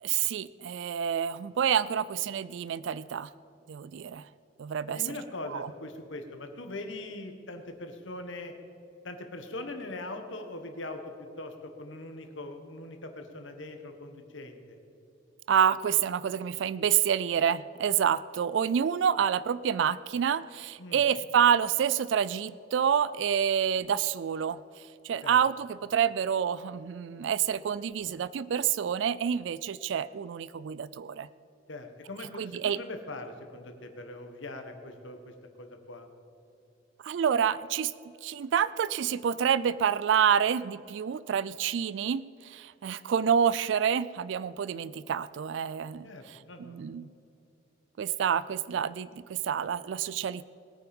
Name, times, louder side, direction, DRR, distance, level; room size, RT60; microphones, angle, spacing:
voice 1, 0.0-3.3 3.7-4.3 4.6-5.0 5.5-5.7 15.5-24.6 25.0-31.3 32.4-32.8 37.0-37.9 38.2-47.1 48.0-50.4, right 8 dB, 70° right, 17 dB, 0.3 m, -28 dB
voice 2, 4.9-8.5 9.0-14.8 20.8-21.1 25.2-25.4 31.7-36.1 46.0-46.8, left 2 dB, 90° left, 6 dB, 1.5 m, -41 dB
20.5 x 9.2 x 5.3 m, 2.7 s
head